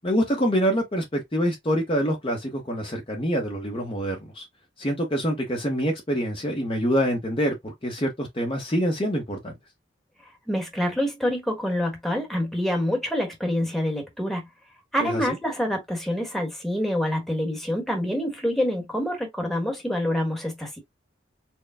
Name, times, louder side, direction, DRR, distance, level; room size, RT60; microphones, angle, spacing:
voice 1, 0.0-4.5 4.8-9.5 15.0-15.3, equal, 30° left, 0.9 m, -26 dB
voice 2, 10.5-14.5 14.9-20.7, equal, ahead, 1.2 m, -26 dB
4.5 x 2.2 x 3.6 m
head